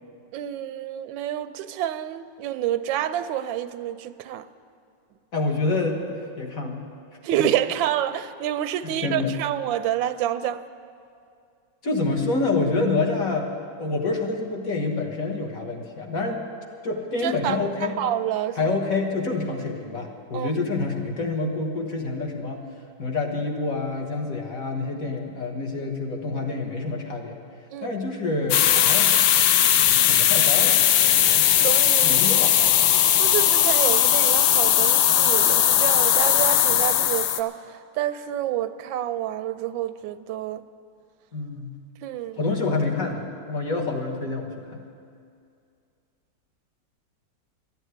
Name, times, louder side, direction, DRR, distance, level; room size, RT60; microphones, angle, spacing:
voice 1, 0.3-4.5 7.2-10.6 17.2-18.6 20.3-20.5 27.7-27.9 31.6-32.2 33.2-40.6 42.0-42.4, right 11 dB, 90° right, 12 dB, 1.3 m, -28 dB
voice 2, 5.3-6.8 8.8-9.4 11.8-13.5 13.8-16.4 16.8-18.0 18.6-22.6 23.0-27.4 27.8-29.1 29.8-31.5 32.0-32.5 41.3-41.7 42.3-44.8, left 3 dB, 50° left, 1 dB, 1.7 m, -27 dB
sound 1, 28.5-37.4, left 10 dB, 70° left, 1.2 m, -18 dB
12.5 x 9.0 x 9.4 m, 2.4 s
omnidirectional pair, 2.0 m